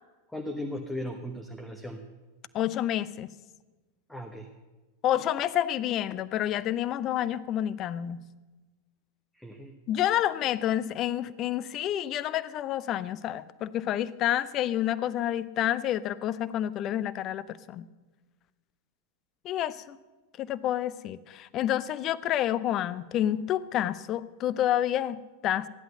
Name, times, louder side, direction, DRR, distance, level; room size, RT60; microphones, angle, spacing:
voice 1, 0.3-2.0 4.1-4.5 9.3-9.8, left 1 dB, 5° left, 4 dB, 1.1 m, -37 dB
voice 2, 2.5-3.3 5.0-8.2 9.9-17.9 19.4-20.0 20.4-25.7, left 11 dB, 35° left, 16 dB, 0.5 m, -29 dB
14.5 x 11.0 x 6.7 m, 1.2 s
figure-of-eight pair, 90°, 0 cm